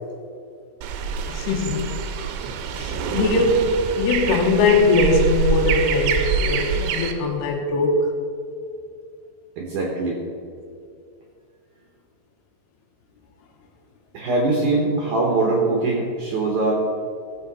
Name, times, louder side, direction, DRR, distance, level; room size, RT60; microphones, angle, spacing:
sound 1, 0.8-7.1, right 6 dB, 90° right, 3.1 m, -25 dB
voice 1, 1.3-1.9 2.8-8.1, left 3 dB, 70° left, 2 dB, 3.0 m, -21 dB
voice 2, 9.6-10.2 14.1-16.8, right 2 dB, 65° right, -1 dB, 2.0 m, -22 dB
16.0 x 7.7 x 4.1 m, 2.4 s
omnidirectional pair, 5.1 m